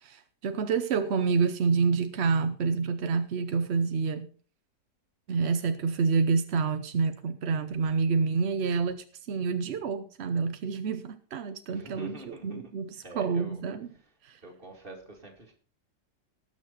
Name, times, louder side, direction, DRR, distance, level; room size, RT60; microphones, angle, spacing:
voice 1, 0.0-4.3 5.3-13.9 14.2-14.4, right 5 dB, 60° right, 0.7 m, -28 dB
voice 2, 11.7-12.7 13.0-13.6 14.4-15.5, right 2 dB, 30° right, 2.5 m, -46 dB
19.0 x 6.6 x 4.2 m
omnidirectional pair, 2.0 m